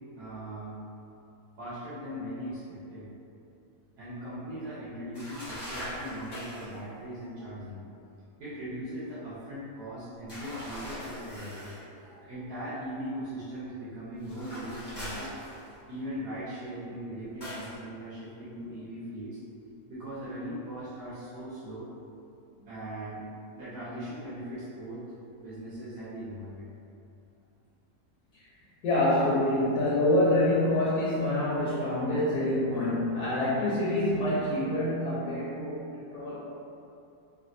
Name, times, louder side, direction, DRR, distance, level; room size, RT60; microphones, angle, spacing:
voice 1, 0.1-0.8 1.6-3.1 4.0-7.8 8.4-11.7 12.2-15.3 15.9-19.4 19.9-21.9 22.6-23.2 23.5-25.1 25.4-26.7, equal, 85° right, -11 dB, 1.2 m, -39 dB
sound 1, 5.1-6.8 10.3-11.8 14.2-15.9 17.4-17.8, equal, 25° left, 0.6 m, -41 dB
voice 2, 28.8-35.9 36.1-36.4, left 1 dB, 75° left, -8 dB, 1.2 m, -26 dB
3.3 x 2.5 x 2.6 m, 2.6 s
omnidirectional pair, 1.7 m